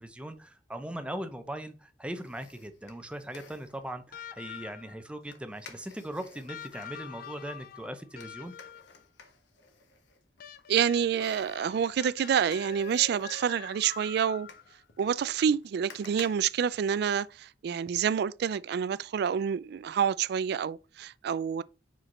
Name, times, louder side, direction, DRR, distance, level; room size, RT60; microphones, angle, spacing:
voice 1, 0.0-8.5, right 1 dB, 5° right, 0.7 m, -39 dB
sound 1, 2.1-3.9 5.3-7.0 8.2-10.7 11.2-17.4 17.8-17.9, left 5 dB, 85° left, 1.0 m, -54 dB
sound 2, 4.1-5.1 6.5-9.0 10.4-14.9 16.2-16.3, left 7 dB, 55° left, 0.4 m, -46 dB
voice 2, 10.7-14.5 15.0-21.6, right 8 dB, 65° right, 0.3 m, -28 dB
4.9 x 4.6 x 4.2 m
head